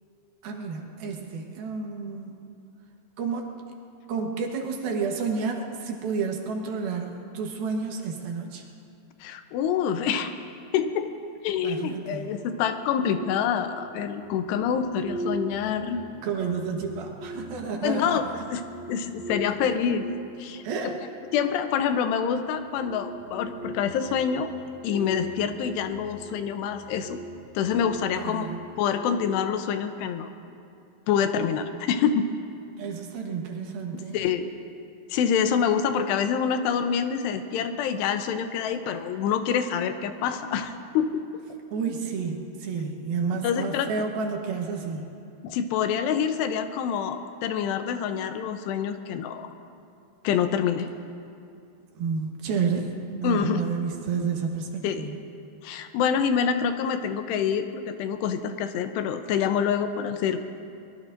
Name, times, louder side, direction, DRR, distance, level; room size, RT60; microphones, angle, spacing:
voice 1, 0.4-2.4 3.2-3.6 4.1-8.6 11.6-12.4 16.2-18.2 20.6-21.0 28.2-28.6 32.8-34.2 41.7-45.1 52.0-55.2, right 5 dB, 70° right, 1 dB, 2.9 m, -30 dB
voice 2, 9.2-10.3 10.7-11.1 11.4-16.0 17.8-18.2 18.5-18.6 18.9-20.1 20.4-20.9 21.3-24.5 24.8-27.2 27.6-28.5 28.8-30.3 31.1-32.3 34.1-34.5 35.1-41.3 43.4-43.9 45.4-49.5 50.2-50.9 53.2-53.6 54.8-55.1 55.6-60.4, left 7 dB, 85° left, 8 dB, 2.9 m, -26 dB
sound 1, 11.5-30.4, right 1 dB, 25° left, 1.2 m, -41 dB
23.0 x 21.0 x 2.6 m, 2.6 s
omnidirectional pair, 4.7 m